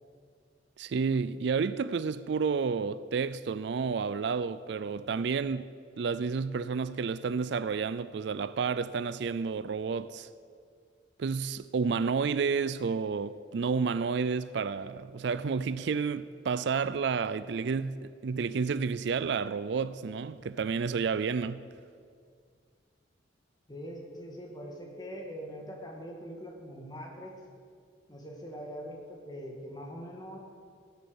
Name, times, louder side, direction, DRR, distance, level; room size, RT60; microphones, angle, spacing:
voice 1, 0.8-10.3 11.2-21.7, right 5 dB, 65° right, 0.4 m, -30 dB
voice 2, 23.7-27.4 28.1-30.4, equal, 20° left, 2.1 m, -42 dB
15.5 x 9.6 x 7.1 m
head